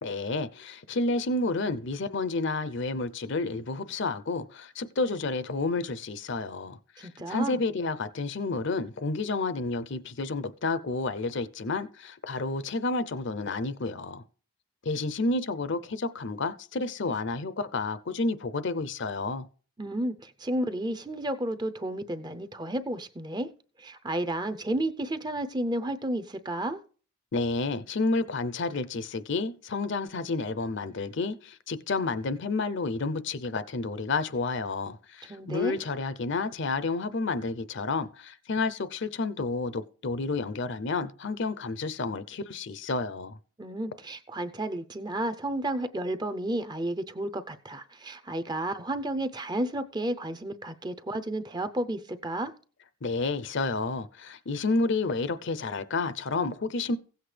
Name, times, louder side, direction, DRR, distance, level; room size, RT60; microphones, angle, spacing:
voice 1, 0.0-14.2 14.8-19.5 27.3-43.4 53.0-57.0, left 3 dB, 55° left, 0.6 m, -30 dB
voice 2, 7.0-7.6 19.8-23.5 23.8-26.8 35.3-35.8 43.6-52.5, right 1 dB, 20° right, 0.6 m, -32 dB
16.0 x 7.9 x 3.3 m
head